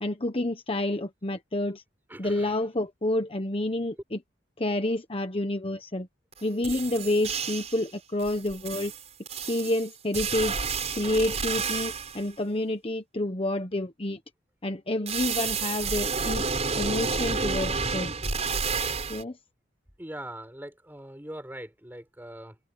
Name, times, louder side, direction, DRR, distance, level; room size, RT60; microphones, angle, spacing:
voice 1, 0.0-1.8 2.2-4.2 4.6-6.1 6.4-8.9 9.5-10.6 10.9-14.2 14.6-16.5 16.8-18.1 19.1-19.4, left 1 dB, 30° left, 1.2 m, -29 dB
voice 2, 2.1-2.6 20.0-22.6, right 1 dB, 10° right, 5.4 m, -41 dB
sound 1, 6.3-6.4 6.6-7.9 8.2-12.2 15.1-19.2, right 5 dB, 35° right, 5.9 m, -30 dB
head